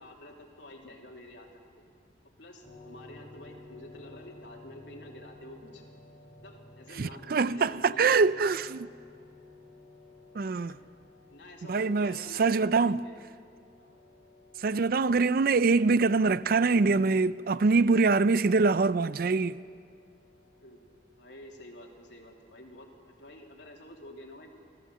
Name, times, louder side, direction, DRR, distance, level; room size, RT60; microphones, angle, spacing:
voice 1, 0.0-1.8 2.4-5.8 6.4-8.3 10.7-10.9 11.3-13.2 13.8-14.0 20.6-20.8 21.2-24.5, left 1 dB, 85° left, 2.9 m, -49 dB
sound 1, 2.6-21.4, left 2 dB, 20° left, 5.3 m, -55 dB
voice 2, 7.0-8.9 10.3-10.7 11.7-13.0 14.6-19.6, right 4 dB, 55° right, 0.4 m, -24 dB
26.0 x 14.5 x 7.7 m
head